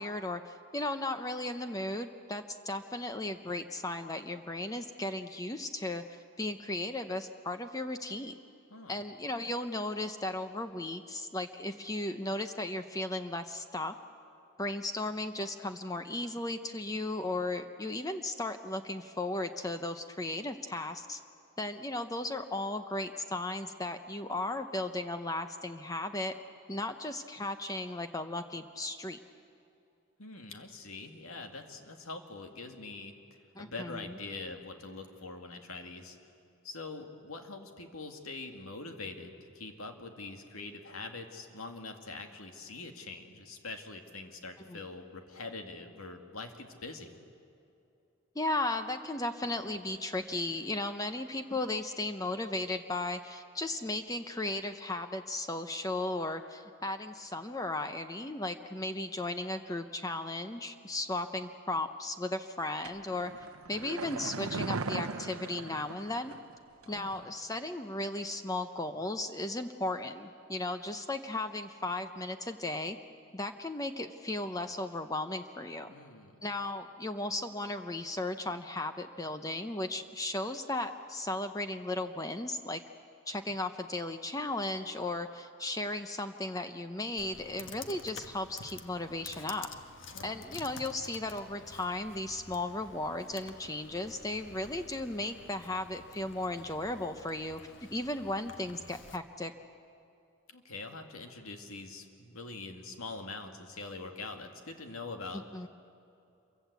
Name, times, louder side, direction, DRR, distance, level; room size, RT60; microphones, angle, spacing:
voice 1, 0.0-6.0 6.4-8.4 8.9-13.9 14.6-21.2 21.6-26.3 26.7-29.2 33.6-34.1 44.6-44.8 48.4-66.3 66.9-73.0 73.3-75.9 76.4-82.8 83.3-89.7 90.2-97.6 97.9-99.5 105.5-105.7, left 2 dB, 15° left, 8 dB, 0.7 m, -36 dB
voice 2, 30.2-33.2 33.6-36.2 36.6-47.1 66.9-67.2 75.9-76.4 90.1-90.4 100.5-105.5, left 3 dB, 80° left, 5 dB, 2.3 m, -44 dB
sound 1, 62.8-66.6 66.8-66.9, right 3 dB, 80° right, 0.8 m, -38 dB
Computer keyboard, 87.2-99.2, left 4 dB, 60° left, 1.4 m, -50 dB
27.5 x 24.0 x 8.2 m, 2.7 s
head